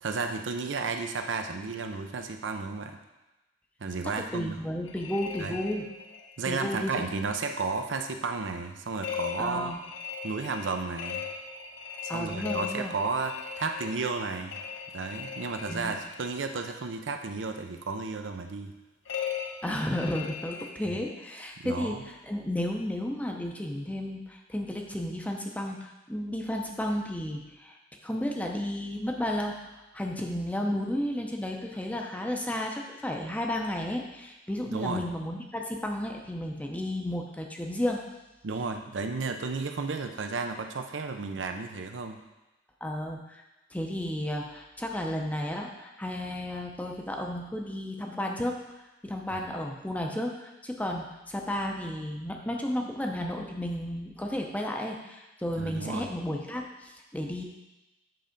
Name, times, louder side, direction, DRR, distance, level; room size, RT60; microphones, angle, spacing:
voice 1, 0.0-3.0 3.8-4.6 5.4-5.6 6.4-9.7 10.2-11.2 12.0-14.6 14.9-18.7 21.6-22.0 34.7-35.0 38.4-42.2 49.3-49.4 55.6-56.1, right 4 dB, 75° right, 5 dB, 0.6 m, -33 dB
voice 2, 4.3-5.9 6.5-7.2 9.4-9.8 12.1-13.0 15.7-15.9 19.6-27.8 28.0-38.0 42.8-43.4 43.7-48.6 49.0-57.4, left 1 dB, 10° left, 1 dB, 0.6 m, -33 dB
sound 1, 4.9-6.4 9.0-16.4 19.1-21.4, left 7 dB, 80° left, 0.8 m, -39 dB
7.8 x 3.3 x 5.1 m, 1.0 s
head